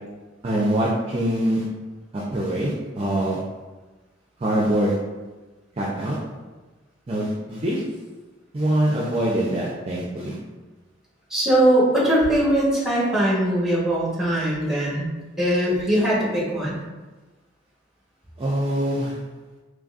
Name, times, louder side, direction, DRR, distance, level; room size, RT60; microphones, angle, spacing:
voice 1, 0.4-1.6 2.1-3.4 4.4-5.0 5.8-6.2 7.1-7.8 8.5-10.4 18.4-19.2, right 1 dB, 30° right, -4 dB, 0.4 m, -24 dB
voice 2, 11.3-15.1 15.4-16.8, right 1 dB, ahead, -6 dB, 1.1 m, -21 dB
3.8 x 3.2 x 2.4 m, 1.2 s
head